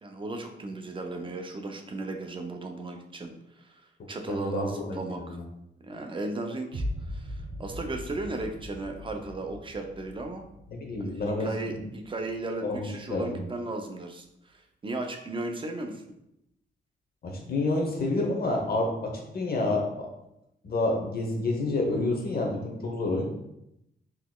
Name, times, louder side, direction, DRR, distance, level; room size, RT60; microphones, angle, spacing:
voice 1, 0.0-3.3 3.6-3.8 4.1-5.4 5.8-10.5 11.0-16.0, right 2 dB, 25° right, 3 dB, 0.4 m, -36 dB
voice 2, 4.3-5.4 10.7-11.8 12.6-13.4 17.2-20.1 20.6-23.3, left 2 dB, 55° left, 0 dB, 0.9 m, -29 dB
sound 1, 6.7-12.7, equal, 90° right, 0.8 m, -40 dB
3.9 x 3.0 x 2.2 m, 0.82 s
cardioid pair, 110°, 18 cm